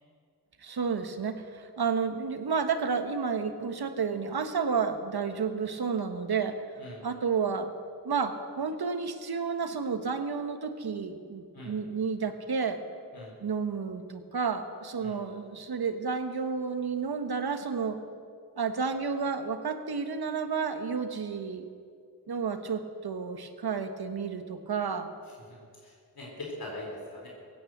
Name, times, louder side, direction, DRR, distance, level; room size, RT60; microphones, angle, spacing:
voice 1, 0.6-6.5 7.0-7.7 8.0-12.8 13.4-18.0 18.6-21.7 22.3-25.1, right 5 dB, 75° right, 8 dB, 1.3 m, -31 dB
voice 2, 25.5-27.3, left 1 dB, 65° left, -2 dB, 4.1 m, -42 dB
16.5 x 9.8 x 7.9 m, 2.2 s
cardioid pair, 45°, 39 cm